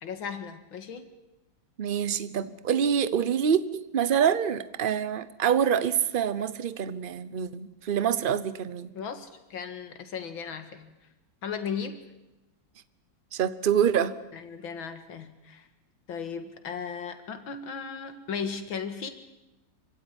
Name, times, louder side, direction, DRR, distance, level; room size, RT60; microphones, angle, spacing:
voice 1, 0.0-1.1 8.9-10.9 11.4-12.0 14.3-15.7 16.1-19.1, left 6 dB, 80° left, 8 dB, 2.6 m, -36 dB
voice 2, 1.8-8.9 13.3-14.2, right 8 dB, 45° right, 15 dB, 0.7 m, -26 dB
25.5 x 16.0 x 9.9 m, 0.99 s
omnidirectional pair, 2.1 m